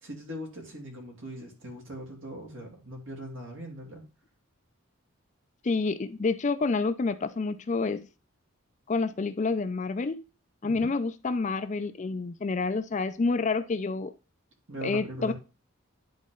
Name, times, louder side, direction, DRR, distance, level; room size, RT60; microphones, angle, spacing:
voice 1, 0.0-4.0 10.6-10.9 14.7-15.3, equal, 60° right, 2.8 m, -40 dB
voice 2, 5.6-8.1 8.9-10.2 10.6-14.1 14.8-15.3, left 3 dB, 35° left, 0.4 m, -28 dB
10.5 x 4.1 x 3.8 m
head